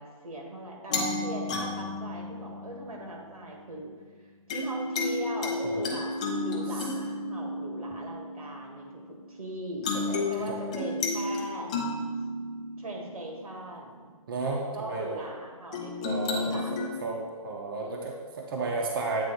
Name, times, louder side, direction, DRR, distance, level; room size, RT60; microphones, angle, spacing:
voice 1, 0.0-3.9 4.2-6.1 6.4-9.9 10.3-11.7 12.8-14.2 14.7-17.0, right 1 dB, 90° right, 0 dB, 1.9 m, -40 dB
sound 1, 0.9-3.2 4.5-9.3 9.8-14.0 15.7-16.9, left 2 dB, 10° left, 0.3 m, -32 dB
voice 2, 14.3-15.2 16.0-16.5 17.0-19.2, right 3 dB, 40° right, -1 dB, 0.8 m, -33 dB
8.4 x 3.6 x 5.1 m, 1.5 s
hypercardioid pair, 165°, 18 cm